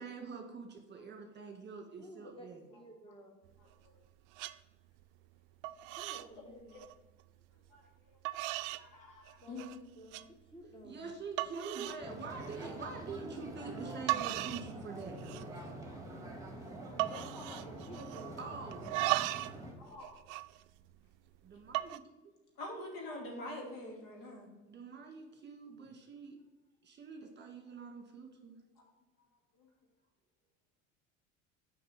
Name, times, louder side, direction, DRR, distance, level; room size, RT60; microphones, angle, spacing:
voice 1, 0.0-2.6 10.8-15.5 18.4-18.9 21.4-22.3 24.7-26.4 26.8-28.6, right 4 dB, 25° right, 3 dB, 1.7 m, -45 dB
voice 2, 2.0-3.4 5.8-6.9 9.4-11.1 17.0-18.5, equal, 15° left, 2 dB, 1.5 m, -53 dB
sound 1, 3.5-4.1 4.3-4.6 5.0-5.4 5.6-6.3 6.6-6.9 7.7-7.8 8.3-8.9 9.3-9.8 10.1-10.3 10.8-10.9 11.4-12.0 12.4-12.7 13.8-13.9 14.1-14.7 15.0-15.6 15.9-16.0 16.2-16.6 17.0-18.4 18.7-19.6 19.9-21.1 21.6-22.0, right 17 dB, 50° right, 0.5 m, -37 dB
voice 3, 3.6-3.9 6.3-6.4 6.7-6.8 7.7-7.8 8.1-8.2 8.6-9.7 19.8-20.2 22.6-24.5 27.2-27.3 28.8-28.9 29.6-29.7, left 1 dB, 65° left, -1 dB, 2.7 m, -46 dB
sound 2, 12.0-19.7, right 1 dB, 10° right, 1.9 m, -46 dB
6.6 x 5.4 x 5.8 m, 1.1 s
hypercardioid pair, 75°, 41 cm